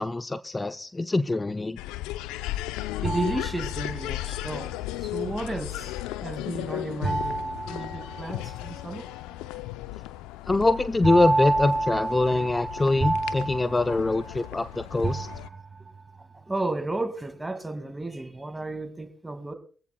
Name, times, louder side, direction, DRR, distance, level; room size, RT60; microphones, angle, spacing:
voice 1, 0.0-1.8 10.5-15.3, left 2 dB, 25° left, 0.7 m, -24 dB
sound 1, 1.8-15.5, left 15 dB, 80° left, 0.6 m, -35 dB
voice 2, 3.0-5.9 6.2-9.1 16.2-19.5, right 2 dB, 20° right, 2.2 m, -33 dB
sound 2, 3.0-4.3 7.0-8.7 11.0-14.6 15.0-16.0, right 2 dB, 35° right, 1.4 m, -29 dB
24.5 x 15.5 x 2.3 m
hypercardioid pair, 45°, 0 cm